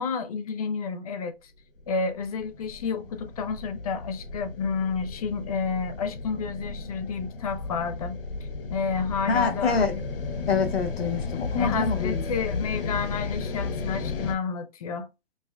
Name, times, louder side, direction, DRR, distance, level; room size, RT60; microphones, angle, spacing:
voice 1, 0.0-1.4 1.9-8.1 8.7-9.8 11.6-15.1, left 5 dB, 40° left, 0.5 m, -30 dB
sound 1, 1.8-14.3, left 4 dB, 65° left, 0.8 m, -34 dB
voice 2, 9.3-10.0 10.5-12.2, left 5 dB, 85° left, 1.1 m, -26 dB
5.2 x 2.1 x 2.3 m
hypercardioid pair, 145°, 30 cm